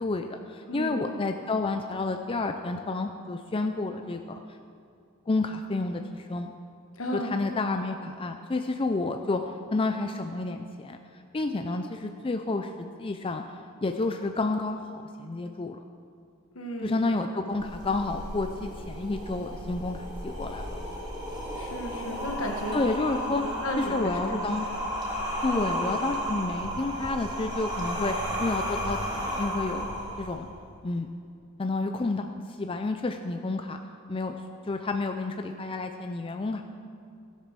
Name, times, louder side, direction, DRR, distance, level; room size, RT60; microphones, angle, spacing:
voice 1, 0.0-4.4 5.3-6.5 7.1-9.4 9.7-11.0 11.3-13.4 13.8-14.8 15.2-15.8 16.8-20.8 22.7-23.4 23.8-24.7 25.4-29.9 30.2-30.5 30.8-31.1 31.6-33.8 34.1-34.4 34.7-36.6, left 3 dB, 25° left, 5 dB, 0.4 m, -30 dB
voice 2, 0.7-1.1 7.0-7.4 16.5-17.0 21.6-22.7 23.2-24.4 25.5-25.6 29.8-29.9, equal, 70° left, 2 dB, 1.6 m, -34 dB
sound 1, 17.6-30.6, equal, 25° right, 3.4 m, -33 dB
16.5 x 7.4 x 6.1 m, 2.4 s
head